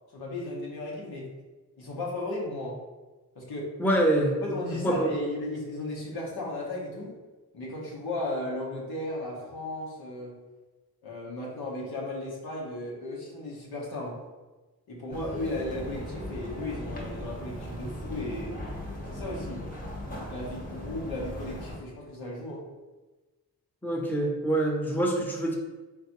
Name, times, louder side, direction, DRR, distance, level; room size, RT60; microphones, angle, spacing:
voice 1, 0.1-1.3 1.8-2.8 3.3-3.7 4.4-7.1 7.5-10.4 11.0-14.2 14.9-18.6 19.0-19.7 20.3-22.7, left 1 dB, 80° left, -4 dB, 1.2 m, -35 dB
voice 2, 3.8-4.3 4.8-5.1 23.8-25.6, right 1 dB, 5° left, -2 dB, 0.8 m, -25 dB
sound 1, 15.1-21.8, equal, 25° left, 1.2 m, -38 dB
3.8 x 3.4 x 3.0 m, 1.2 s
cardioid pair, 65°, 37 cm